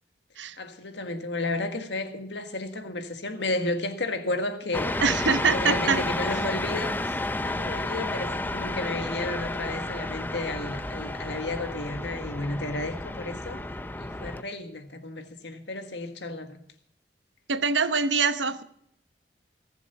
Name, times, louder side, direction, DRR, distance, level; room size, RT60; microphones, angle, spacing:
voice 1, 0.6-13.7 14.0-16.6, left 2 dB, 80° left, 1.7 m, -33 dB
sound 1, 4.7-14.4, left 1 dB, 10° left, 0.5 m, -31 dB
voice 2, 5.0-6.0 17.5-18.6, right 5 dB, 90° right, 1.0 m, -24 dB
19.0 x 7.4 x 7.0 m
head